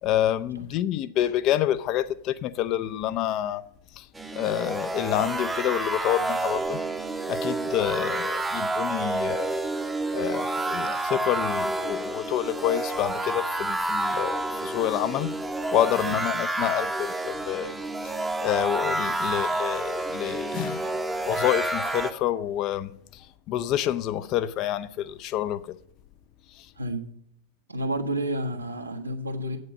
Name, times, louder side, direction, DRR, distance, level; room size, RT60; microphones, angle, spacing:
voice 1, 0.0-3.6 4.0-4.1 4.3-6.8 7.3-9.6 10.1-15.4 15.7-17.7 18.0-18.1 18.4-20.9 21.2-25.7 26.5-26.7, left 12 dB, 40° left, 0.6 m, -28 dB
sound 1, 4.1-22.1, right 2 dB, 10° right, 0.8 m, -29 dB
voice 2, 27.7-29.6, right 1 dB, 80° right, 1.4 m, -30 dB
9.6 x 8.5 x 5.3 m
figure-of-eight pair, 90°, 0 cm